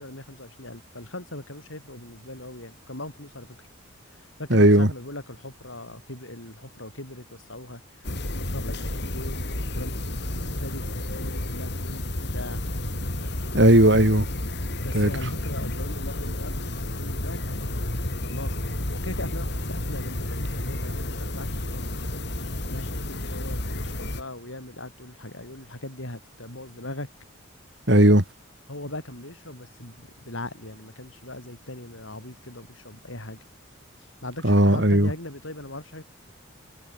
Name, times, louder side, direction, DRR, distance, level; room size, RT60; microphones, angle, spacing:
voice 1, 0.0-3.6 4.1-7.8 8.2-12.1 12.3-12.6 14.8-27.1 28.7-33.4 34.2-36.0, left 1 dB, 70° left, 8.0 m, -40 dB
voice 2, 4.5-4.9 13.5-14.3 14.9-15.1 27.9-28.2 34.4-35.1, right 1 dB, 55° right, 3.7 m, -16 dB
sound 1, 8.0-24.2, left 1 dB, 55° left, 3.7 m, -31 dB
head